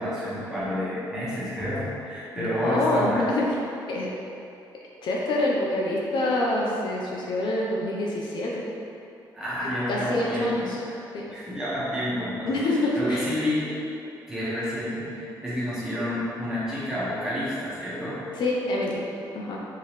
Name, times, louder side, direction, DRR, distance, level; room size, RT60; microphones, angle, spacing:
voice 1, 0.0-3.2 9.3-10.9 11.3-12.5 12.9-13.7 14.3-18.2, equal, 5° right, -11 dB, 1.5 m, -29 dB
voice 2, 2.4-3.6 3.9-4.1 5.0-8.6 9.9-10.8 11.1-11.3 12.5-13.3 18.4-19.0 19.3-19.6, left 1 dB, 70° left, -3 dB, 0.6 m, -26 dB
4.6 x 3.7 x 3.1 m, 2.7 s
cardioid pair, 125°, 8 cm